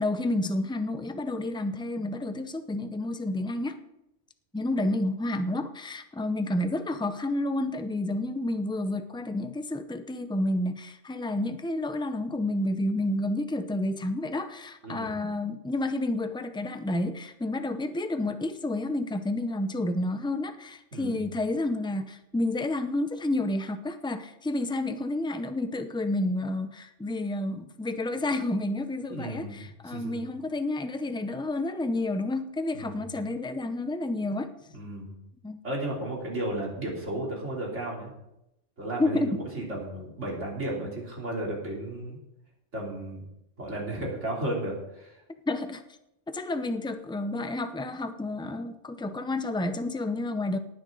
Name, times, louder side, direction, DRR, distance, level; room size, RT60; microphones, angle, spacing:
voice 1, 0.0-3.8 4.5-34.5 35.4-35.6 39.0-39.4 45.5-45.8 46.3-50.6, left 2 dB, 5° left, 9 dB, 0.4 m, -30 dB
voice 2, 14.8-15.1 20.9-21.2 29.1-30.2 32.7-33.0 34.7-35.1 35.6-38.1 38.8-42.2 42.7-43.2 43.6-45.2, right 1 dB, 70° right, -3 dB, 3.6 m, -34 dB
18.5 x 9.5 x 3.9 m, 0.86 s
omnidirectional pair, 1.3 m